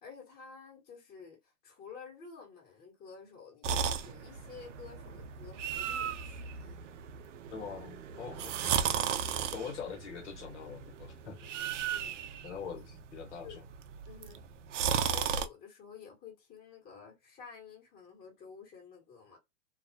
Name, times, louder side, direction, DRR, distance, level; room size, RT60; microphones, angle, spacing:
voice 1, 0.0-6.8 11.9-12.4 13.4-13.6 14.1-14.4 14.8-19.4, left 6 dB, 25° left, 1.1 m, -51 dB
sound 1, 3.6-15.5, right 8 dB, 85° right, 0.5 m, -35 dB
voice 2, 7.5-8.8 9.5-11.4 12.4-13.6, left 6 dB, 75° left, 1.0 m, -43 dB
2.4 x 2.1 x 2.6 m
hypercardioid pair, 120°, 36 cm